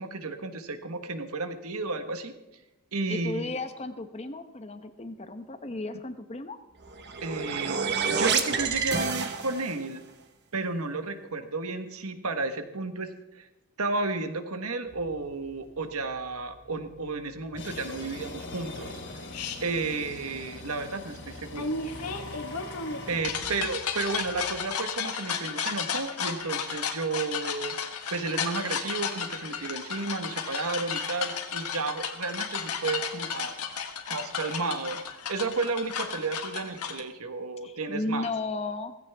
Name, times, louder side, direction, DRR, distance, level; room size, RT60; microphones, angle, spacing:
voice 1, 0.0-2.3 2.9-3.5 7.2-7.8 8.1-10.1 10.5-13.5 13.8-19.0 19.6-21.7 22.7-22.8 23.1-27.7 28.1-33.5 34.1-35.0 35.3-38.3, right 3 dB, 75° right, 8 dB, 1.3 m, -32 dB
voice 2, 3.1-6.6 23.2-23.7 37.6-39.0, left 2 dB, 30° left, 9 dB, 0.9 m, -35 dB
sound 1, 6.8-9.8, right 5 dB, 50° right, 1.2 m, -28 dB
sound 2, 14.9-24.7, left 2 dB, 55° left, 2.9 m, -43 dB
sound 3, 19.3-19.6 21.6-37.0, left 6 dB, 85° left, 1.5 m, -33 dB
17.0 x 15.5 x 3.5 m, 0.94 s
head